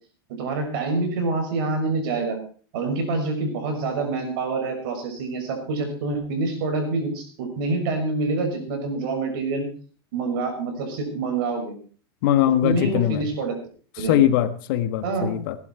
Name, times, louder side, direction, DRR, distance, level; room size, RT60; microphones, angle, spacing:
voice 1, 0.4-2.4 2.7-9.7 10.1-11.7 12.6-13.6 14.0-14.2 15.0-15.4, right 3 dB, 65° right, 5 dB, 6.5 m, -26 dB
voice 2, 12.2-13.3 14.0-15.6, left 12 dB, 60° left, 12 dB, 1.4 m, -21 dB
18.0 x 11.5 x 4.8 m, 0.42 s
hypercardioid pair, 115°, 13 cm